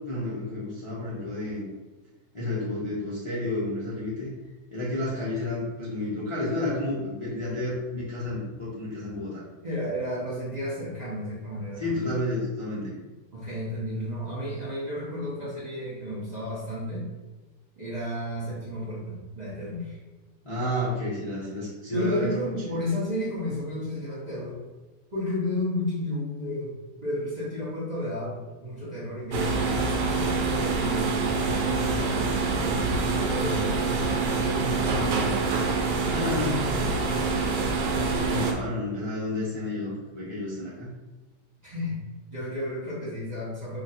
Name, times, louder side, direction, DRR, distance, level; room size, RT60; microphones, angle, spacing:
voice 1, 0.1-1.7 2.3-4.3 4.7-9.4 11.8-13.0 20.4-22.3 22.7-22.8 36.0-36.7 38.1-40.9, left 1 dB, 50° left, -8 dB, 0.3 m, -31 dB
voice 2, 9.6-12.1 13.3-17.0 17.8-20.0 21.9-24.6 25.1-29.8 30.1-32.3 32.6-35.4 36.1-37.2 41.6-42.0 42.3-43.8, left 1 dB, 40° right, -8 dB, 0.6 m, -32 dB
sound 1, 29.3-38.5, right 4 dB, 85° right, 1.2 m, -26 dB
2.8 x 2.5 x 4.2 m, 1.2 s
omnidirectional pair, 1.8 m